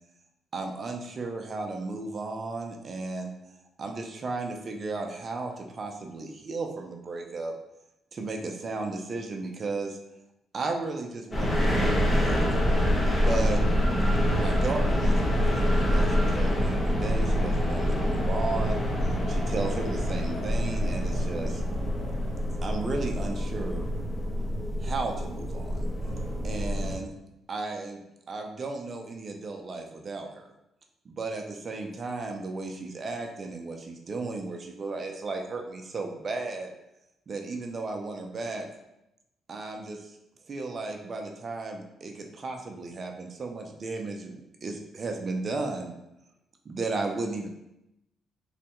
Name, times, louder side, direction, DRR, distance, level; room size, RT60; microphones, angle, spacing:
voice 1, 0.5-3.3 3.8-7.5 8.1-10.0 10.5-12.4 13.2-13.6 14.4-18.9 19.3-21.6 22.6-23.9 24.8-25.9 26.4-27.1 27.5-28.0 28.3-30.5 31.1-36.7 37.3-38.7 39.5-40.2 40.5-45.9 46.7-47.5, right 3 dB, 40° right, 2 dB, 0.4 m, -34 dB
sound 1, 11.3-27.0, equal, 35° left, 0.7 m, -26 dB
3.2 x 2.2 x 2.9 m, 0.86 s
cardioid pair, 90°, 0 cm